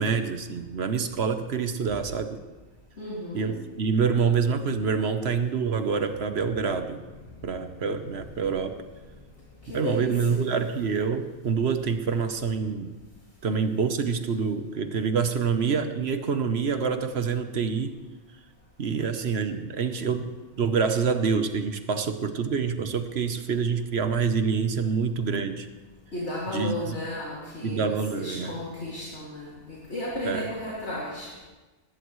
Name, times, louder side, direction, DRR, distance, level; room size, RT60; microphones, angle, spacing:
voice 1, 0.0-2.4 3.3-7.0 7.4-8.8 9.7-12.9 13.4-17.9 18.8-20.3 20.6-25.7 26.5-27.0 27.6-28.6 30.2-30.5, right 5 dB, 55° right, 8 dB, 1.1 m, -26 dB
voice 2, 3.0-3.5 9.6-10.4 26.1-31.3, left 1 dB, 55° left, -6 dB, 2.8 m, -34 dB
19.5 x 16.0 x 3.2 m, 1.2 s
omnidirectional pair, 1.4 m